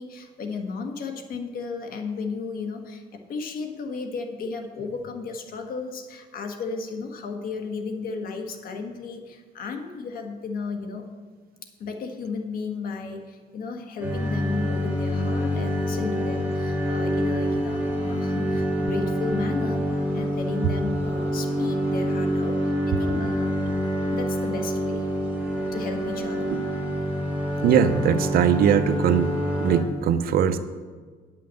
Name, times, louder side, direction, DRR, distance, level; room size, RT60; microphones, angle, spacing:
voice 1, 0.0-11.1 11.8-23.6 24.1-25.0 25.7-26.6, left 4 dB, 60° left, 5 dB, 1.4 m, -34 dB
sound 1, 14.0-29.8, equal, 10° right, 2.7 m, -26 dB
voice 2, 27.6-29.3 29.6-30.6, right 9 dB, 65° right, 11 dB, 0.7 m, -20 dB
9.7 x 5.8 x 7.5 m, 1.5 s
cardioid pair, 110°, 17 cm